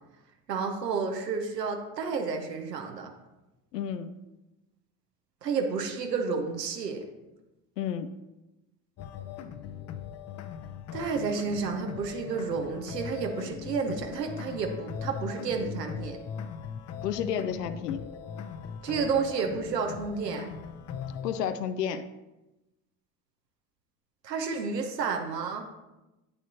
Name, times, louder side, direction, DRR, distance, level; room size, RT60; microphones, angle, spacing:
voice 1, 0.5-3.1 5.4-7.0 10.9-16.2 18.8-20.5 24.2-25.7, right 5 dB, 85° right, 4 dB, 0.8 m, -31 dB
voice 2, 3.7-4.1 7.8-8.1 17.0-18.0 21.2-22.0, left 8 dB, 80° left, 11 dB, 0.5 m, -31 dB
sound 1, 9.0-21.4, left 7 dB, 35° left, 0.5 m, -40 dB
8.6 x 6.5 x 2.8 m, 1.0 s
figure-of-eight pair, 60°, 48 cm